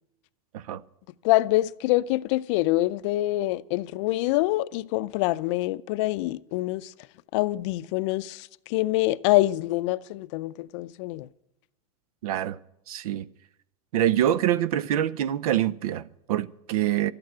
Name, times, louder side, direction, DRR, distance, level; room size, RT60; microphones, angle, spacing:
voice 1, 1.2-6.9 7.3-11.3, left 17 dB, 55° left, 0.5 m, -25 dB
voice 2, 12.2-12.6 12.9-13.3 13.9-17.1, right 11 dB, 80° right, 0.7 m, -25 dB
12.5 x 8.8 x 9.2 m
supercardioid pair, 145°, 18 cm